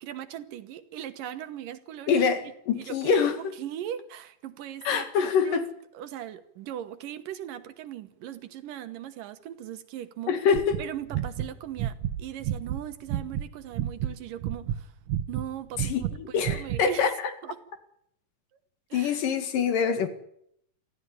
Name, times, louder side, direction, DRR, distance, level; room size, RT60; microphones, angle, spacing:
voice 1, 0.0-2.2 2.7-5.6 5.9-10.3 10.8-14.9 15.3-17.1 17.4-17.6 18.9-19.2, right 11 dB, 85° right, 2.9 m, -39 dB
voice 2, 2.1-3.4 4.9-5.7 10.3-10.8 15.8-17.1 18.9-20.1, left 6 dB, 80° left, 3.7 m, -25 dB
sound 1, 10.5-13.5 13.7-16.2 16.4-16.8, right 11 dB, 65° right, 2.0 m, -30 dB
24.0 x 15.0 x 10.0 m
omnidirectional pair, 3.8 m